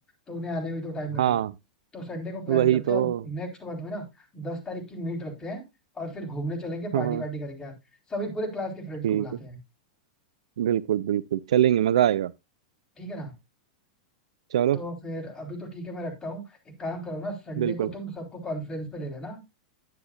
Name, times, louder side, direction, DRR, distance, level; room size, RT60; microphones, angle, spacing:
voice 1, 0.3-1.4 1.9-5.6 5.9-7.7 8.1-9.6 13.0-13.3 14.7-19.4, equal, 20° left, 4.0 m, -34 dB
voice 2, 1.2-1.5 2.5-3.2 6.9-7.2 9.0-9.3 10.6-12.3 14.5-14.8 17.6-17.9, right 11 dB, 65° right, 0.4 m, -23 dB
10.5 x 9.6 x 2.4 m
figure-of-eight pair, 95°, 4 cm